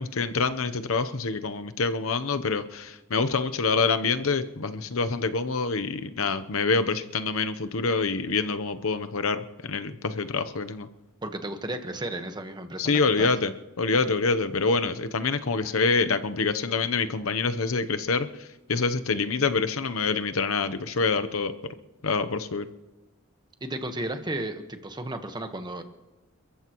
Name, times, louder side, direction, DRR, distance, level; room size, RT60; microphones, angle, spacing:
voice 1, 0.0-10.9 12.8-21.5 22.0-22.7, left 4 dB, 75° left, 10 dB, 0.9 m, -26 dB
voice 2, 11.2-13.3 23.6-25.8, right 1 dB, 20° right, 6 dB, 1.3 m, -34 dB
29.5 x 14.5 x 3.1 m, 1.1 s
head